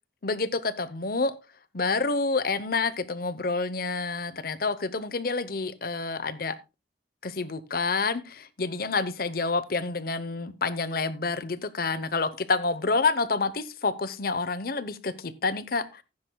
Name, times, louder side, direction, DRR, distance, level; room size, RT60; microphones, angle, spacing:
voice 1, 0.2-1.4 1.7-6.5 7.2-16.0, left 3 dB, 50° left, 0.8 m, -28 dB
15.5 x 9.6 x 2.2 m
head